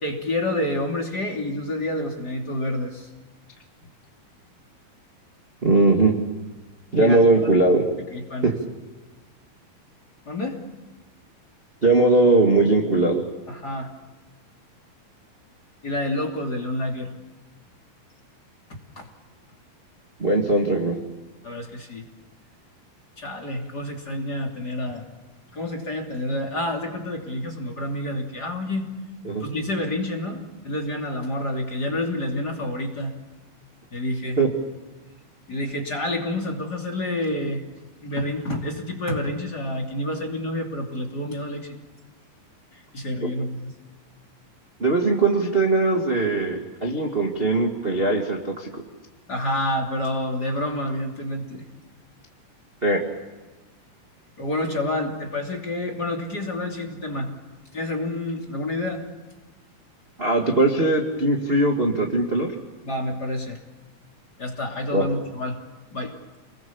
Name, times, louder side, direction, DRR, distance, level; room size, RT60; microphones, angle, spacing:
voice 1, 0.0-3.1 7.0-7.5 8.1-8.5 10.2-10.6 13.5-13.9 15.8-17.1 19.0-19.1 21.4-22.0 23.2-25.1 25.5-28.9 29.4-33.1 33.9-34.4 35.5-37.6 38.0-41.7 42.7-43.7 49.3-51.6 54.4-57.3 57.7-59.0 62.8-63.6 64.4-65.6 65.9-66.1, left 1 dB, 30° left, 4 dB, 3.1 m, -28 dB
voice 2, 5.6-6.2 6.9-7.8 8.4-8.5 11.8-13.2 20.2-21.0 29.2-29.5 34.4-34.5 44.8-48.7 52.8-53.0 60.2-62.5 64.9-65.0, right 2 dB, 20° right, 0 dB, 1.6 m, -20 dB
29.0 x 21.5 x 7.2 m, 1.2 s
omnidirectional pair, 4.4 m